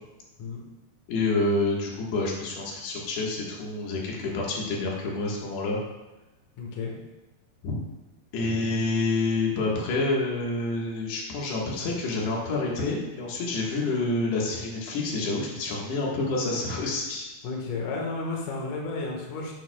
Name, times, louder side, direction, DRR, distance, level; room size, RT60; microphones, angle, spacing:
voice 1, 1.1-5.8 7.6-7.8 8.3-17.3, left 2 dB, 90° left, -3 dB, 3.7 m, -28 dB
voice 2, 6.6-6.9 17.4-19.5, left 3 dB, 60° left, -1 dB, 2.7 m, -32 dB
10.5 x 9.7 x 2.3 m, 1.1 s
omnidirectional pair, 4.6 m